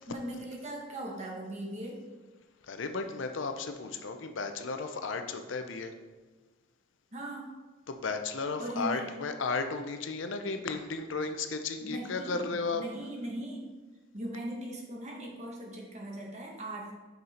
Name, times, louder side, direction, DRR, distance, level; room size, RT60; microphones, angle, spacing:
voice 1, 0.1-2.0 7.1-7.5 8.6-9.1 11.8-13.7 14.1-16.9, right 1 dB, 35° right, -1 dB, 1.5 m, -39 dB
voice 2, 2.7-5.9 7.9-12.8, left 4 dB, 75° left, 7 dB, 0.6 m, -34 dB
6.7 x 5.4 x 4.3 m, 1.3 s
head